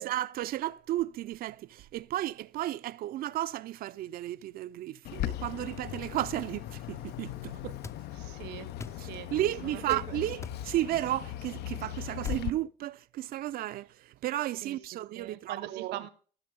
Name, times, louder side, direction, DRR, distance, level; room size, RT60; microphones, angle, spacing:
voice 1, 0.0-7.8 9.0-16.0, right 14 dB, 60° right, 0.4 m, -34 dB
Bird, 5.0-12.5, left 13 dB, 75° left, 0.5 m, -39 dB
sound 1, 7.8-8.0 8.8-9.0 9.9-10.1 10.4-10.6 12.2-12.5, left 4 dB, 15° left, 0.4 m, -42 dB
voice 2, 8.2-8.7 9.0-9.3 9.6-10.2 14.6-14.8 15.1-16.1, right 13 dB, 85° right, 0.8 m, -40 dB
14.0 x 6.0 x 5.0 m
cardioid pair, 110°, 17 cm